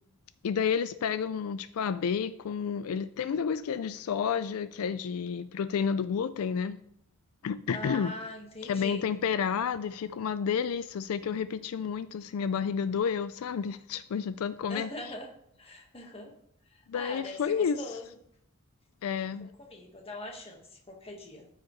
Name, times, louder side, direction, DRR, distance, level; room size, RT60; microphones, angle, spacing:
voice 1, 0.4-6.8 7.4-8.1 8.6-14.9 16.9-17.8 19.0-19.5, left 7 dB, 85° left, 13 dB, 0.4 m, -30 dB
voice 2, 7.7-9.0 14.6-15.3 15.6-16.3 16.6-18.1 19.4-21.5, left 1 dB, 30° left, 1 dB, 1.5 m, -42 dB
14.0 x 4.9 x 3.1 m, 0.71 s
head